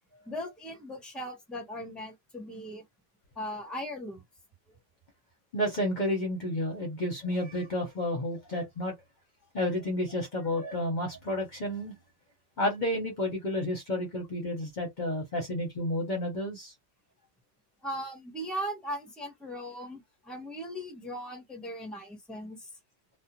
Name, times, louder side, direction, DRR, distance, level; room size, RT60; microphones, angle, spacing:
voice 1, 0.3-2.8 3.3-4.2 17.8-22.7, equal, ahead, 0.9 m, -38 dB
voice 2, 5.5-8.9 9.5-11.9 12.6-16.7, left 1 dB, 45° left, 0.9 m, -31 dB
2.4 x 2.2 x 2.9 m
omnidirectional pair, 1.2 m